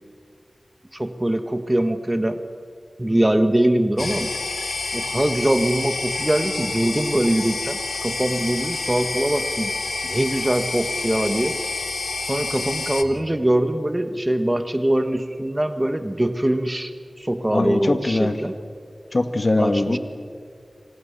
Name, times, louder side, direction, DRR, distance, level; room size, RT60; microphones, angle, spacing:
voice 1, 0.9-2.4 3.0-4.3 4.9-9.7 10.1-11.6 12.2-16.9 17.2-18.5 19.6-20.0, right 1 dB, 20° right, 9 dB, 1.3 m, -22 dB
sound 1, 4.0-13.0, left 3 dB, 75° left, 1.6 m, -28 dB
voice 2, 17.5-18.4 19.1-20.0, left 2 dB, 50° left, 8 dB, 1.9 m, -21 dB
26.5 x 25.5 x 7.0 m, 2.2 s
wide cardioid pair, 65°, 0 cm